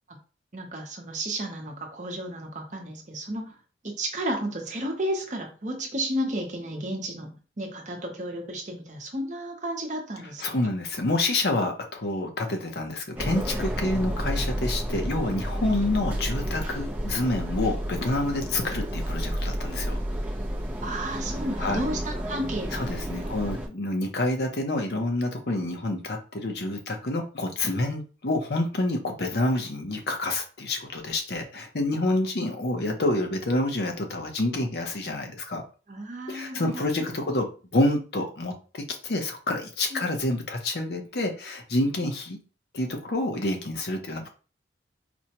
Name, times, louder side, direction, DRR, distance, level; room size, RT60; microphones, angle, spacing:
voice 1, 0.5-3.5 3.8-10.4 20.8-22.8 23.2-23.3 35.9-36.8 39.9-40.1, right 1 dB, 40° right, 2 dB, 0.8 m, -32 dB
voice 2, 10.2-19.9 21.6-21.8 22.7-35.6 36.3-42.4 42.7-44.3, left 2 dB, 65° left, 3 dB, 0.7 m, -28 dB
sound 1, 13.2-23.7, equal, 10° right, 0.5 m, -31 dB
4.3 x 2.2 x 2.9 m, 0.36 s
head